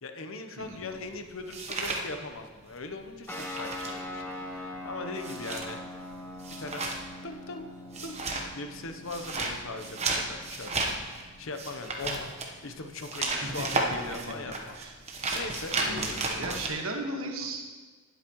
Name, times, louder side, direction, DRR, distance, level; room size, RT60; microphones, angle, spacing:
voice 1, 0.0-5.8 6.6-6.8 7.2-7.7 8.0-8.2 8.5-14.8 15.3-16.6 17.4-17.5, left 3 dB, 65° left, 6 dB, 0.9 m, -40 dB
sound 1, 0.6-2.8 3.0-16.7, right 3 dB, 30° right, 1.1 m, -34 dB
voice 2, 0.6-1.0 13.4-13.7 14.7-14.9 15.8-16.1 16.3-17.7, right 2 dB, 75° right, 2 dB, 1.6 m, -36 dB
sound 2, 3.3-14.2, left 1 dB, 10° left, 0.9 m, -44 dB
18.5 x 8.1 x 3.1 m, 1.4 s
head